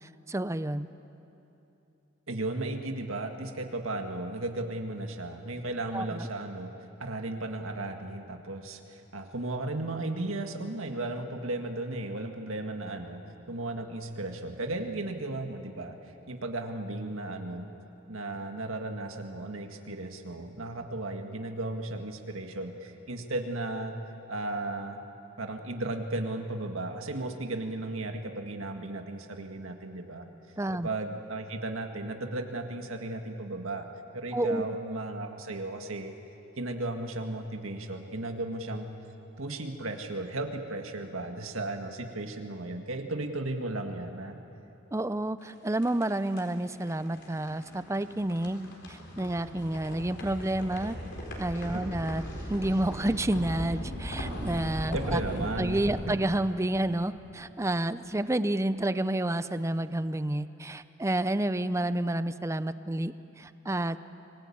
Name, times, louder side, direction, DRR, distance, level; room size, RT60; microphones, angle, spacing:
voice 1, 0.3-0.9 5.9-6.3 30.6-30.9 34.3-34.7 44.9-51.0 51.4-52.2 52.5-64.0, right 1 dB, 15° right, 13 dB, 0.5 m, -30 dB
voice 2, 2.3-6.7 7.0-13.2 13.5-16.0 16.3-17.7 18.1-24.0 24.3-25.0 25.4-30.3 30.8-33.9 34.1-36.1 36.6-38.9 39.4-44.4 51.7-51.9 54.9-56.2, right 2 dB, 80° right, 4 dB, 1.8 m, -35 dB
sound 1, 45.4-57.5, equal, 55° left, 4.1 m, -39 dB
25.5 x 20.0 x 8.6 m, 2.9 s
head